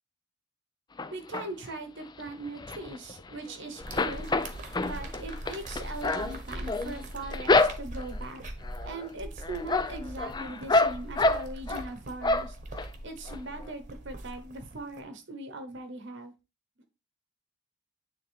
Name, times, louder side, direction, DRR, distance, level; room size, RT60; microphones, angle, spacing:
sound 1, 1.0-1.7 2.2-3.5 3.8-8.2 8.6-9.1 9.4-11.9 12.2-12.9 13.3-13.4 13.6-13.7, left 2 dB, 20° left, 0.4 m, -28 dB
voice 1, 1.1-4.3 4.8-8.4 8.8-12.6 13.0-16.3, right 2 dB, 55° right, 1.0 m, -40 dB
sound 2, 3.8-15.0, right 1 dB, 35° right, 1.2 m, -41 dB
9.5 x 3.6 x 3.4 m
head